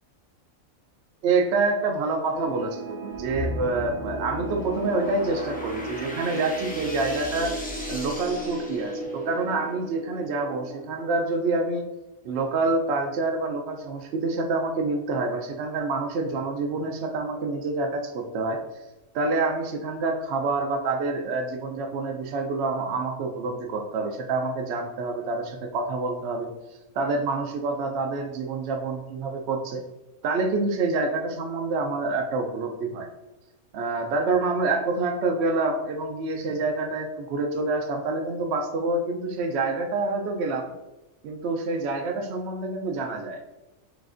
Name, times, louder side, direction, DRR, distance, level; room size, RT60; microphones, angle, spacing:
voice 1, 1.2-7.5 7.9-11.9 12.2-18.6 19.1-26.5 26.9-29.8 30.2-33.1 33.7-40.7 41.2-43.4, right 3 dB, 60° right, 4 dB, 0.8 m, -27 dB
sound 1, 2.3-11.7, right 2 dB, 25° left, 1.0 m, -36 dB
sound 2, 3.1-9.4, left 2 dB, 10° left, 0.4 m, -37 dB
6.3 x 2.6 x 2.5 m, 1.0 s
omnidirectional pair, 1.4 m